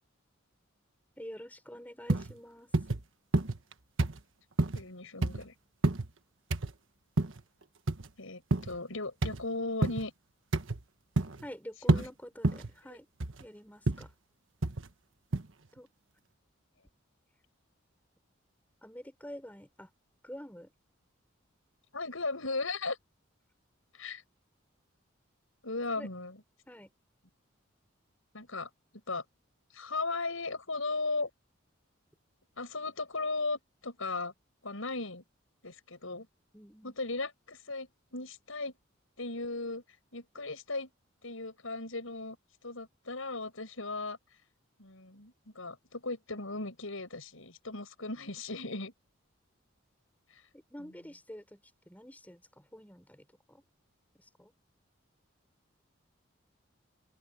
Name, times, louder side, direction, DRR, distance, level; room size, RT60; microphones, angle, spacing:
voice 1, 1.2-2.7 11.4-13.1 13.4-14.1 15.7-15.9 18.8-19.9 20.2-20.7 26.0-26.1 26.7-26.9 36.5-37.0 50.5-53.6 54.1-54.5, equal, 10° left, 6.6 m, -48 dB
sound 1, 2.1-2.3 2.7-3.0 3.3-3.7 4.0-4.2 4.6-4.8 5.2-5.4 5.8-6.1 6.5-6.7 7.2-7.4 7.9-8.1 8.5-8.8 9.2-9.4 9.8-10.0 10.5-10.8 11.2-11.5 11.9-12.1 12.4-12.7 13.2-13.4 13.9-14.1 14.6-14.9 15.3-15.4, right 2 dB, 75° right, 1.3 m, -28 dB
voice 2, 4.7-5.5 8.2-10.1 11.9-12.1 21.9-23.0 23.9-24.2 25.6-26.4 28.3-28.7 29.1-29.2 29.7-31.3 32.6-34.3 34.6-35.2 35.6-36.3 36.8-38.7 39.2-39.8 40.1-40.9 41.2-42.4 42.6-44.2 44.8-48.9, left 3 dB, 85° left, 6.1 m, -37 dB
open air
head